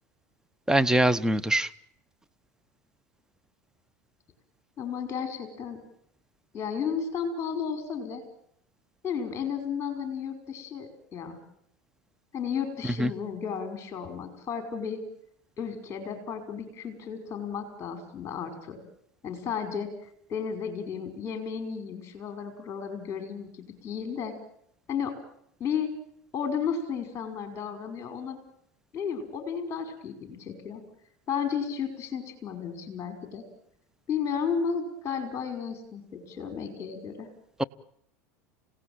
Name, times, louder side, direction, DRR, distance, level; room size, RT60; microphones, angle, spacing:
voice 1, 0.7-1.7 13.0-13.1 37.6-37.7, right 1 dB, 5° right, 11 dB, 1.0 m, -23 dB
voice 2, 4.8-5.8 6.5-8.2 9.0-11.4 12.3-15.0 15.6-18.8 19.2-19.9 20.3-23.5 23.8-24.3 24.9-25.2 25.6-25.9 26.3-28.4 28.9-30.8 31.3-33.4 34.1-37.3, left 7 dB, 30° left, 6 dB, 5.3 m, -33 dB
29.5 x 17.0 x 9.0 m, 0.75 s
hypercardioid pair, 80°, 9 cm